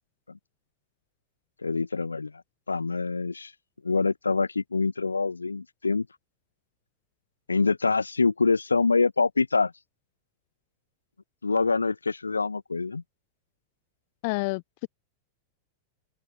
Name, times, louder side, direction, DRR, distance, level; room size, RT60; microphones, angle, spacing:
voice 1, 1.6-2.3 2.7-3.5 3.8-6.1 7.5-9.7 11.4-13.0, left 4 dB, 80° left, 1.4 m, -25 dB
voice 2, 14.2-14.9, left 29 dB, 45° left, 0.9 m, -29 dB
open air
figure-of-eight pair, 90°, 0 cm